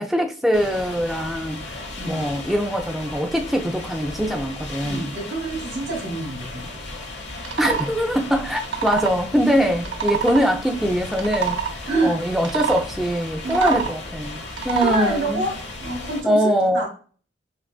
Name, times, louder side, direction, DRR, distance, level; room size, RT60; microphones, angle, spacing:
voice 1, 0.0-5.1 7.6-15.4 16.2-16.8, equal, ahead, 0.3 m, -23 dB
sound 1, 0.5-16.2, left 2 dB, 65° left, 1.1 m, -35 dB
voice 2, 4.8-6.7 11.9-12.2 13.4-13.8 14.8-15.5 15.8-16.9, right 2 dB, 90° right, 2.0 m, -26 dB
sound 2, 7.4-7.9 8.5-9.2 9.8-10.4 11.1-11.7 12.4-12.8 13.4-14.0 14.5-15.0, right 8 dB, 70° right, 0.7 m, -26 dB
6.0 x 2.4 x 2.3 m
head